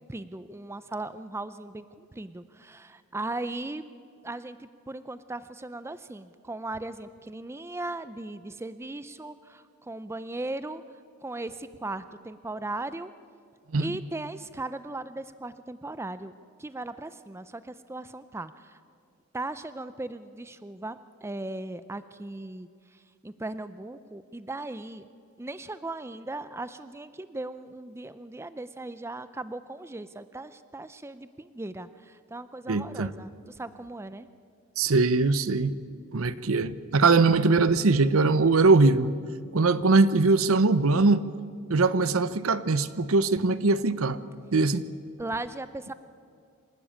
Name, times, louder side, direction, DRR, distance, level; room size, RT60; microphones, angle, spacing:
voice 1, 0.1-3.8 4.2-10.8 11.2-13.1 13.8-16.3 16.6-18.8 19.3-25.1 25.4-34.3 45.2-45.9, right 2 dB, 10° right, 0.4 m, -38 dB
voice 2, 32.7-33.1 34.8-35.8 36.1-39.1 39.5-41.3 41.7-44.2 44.5-44.8, right 3 dB, 70° right, 0.8 m, -21 dB
26.5 x 12.0 x 8.7 m
head